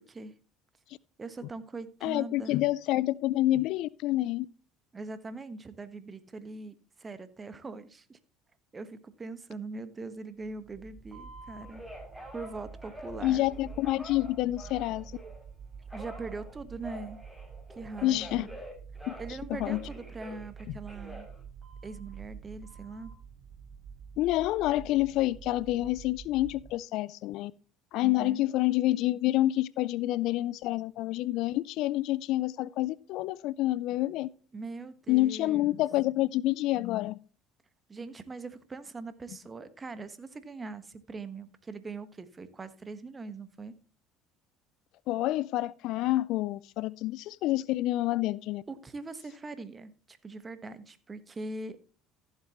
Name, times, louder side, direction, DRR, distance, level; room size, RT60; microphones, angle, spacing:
voice 1, 1.2-2.6 4.9-8.2 8.7-11.8 12.3-13.5 15.9-17.2 17.7-18.5 19.2-21.3 21.8-23.1 28.0-28.5 34.5-35.8 37.9-43.7 48.7-51.8, right 3 dB, 25° right, 1.2 m, -41 dB
voice 2, 2.0-4.5 13.2-15.1 18.0-18.5 19.1-19.2 19.5-19.8 24.2-27.5 27.9-34.3 35.1-37.2 45.1-48.6, left 16 dB, 65° left, 0.3 m, -28 dB
sound 1, 10.4-26.7, right 6 dB, 45° right, 0.8 m, -48 dB
Telephone, 11.1-15.4 15.9-19.4 19.6-22.1 22.6-23.1, equal, ahead, 5.9 m, -47 dB
15.0 x 7.4 x 3.0 m
hypercardioid pair, 70°, 0 cm